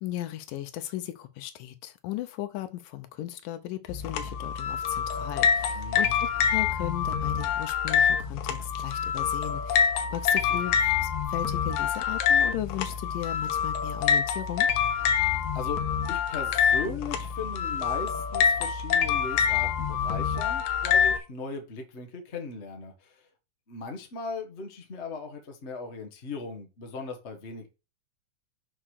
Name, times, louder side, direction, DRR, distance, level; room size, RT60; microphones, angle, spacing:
voice 1, 0.0-14.7, left 13 dB, 90° left, 2.4 m, -36 dB
sound 1, 3.9-21.2, left 7 dB, 70° left, 2.2 m, -26 dB
voice 2, 5.7-6.1 10.5-10.6 15.5-15.8 16.1-23.3 23.7-27.7, left 4 dB, 35° left, 1.0 m, -38 dB
6.0 x 5.6 x 6.4 m
omnidirectional pair, 3.7 m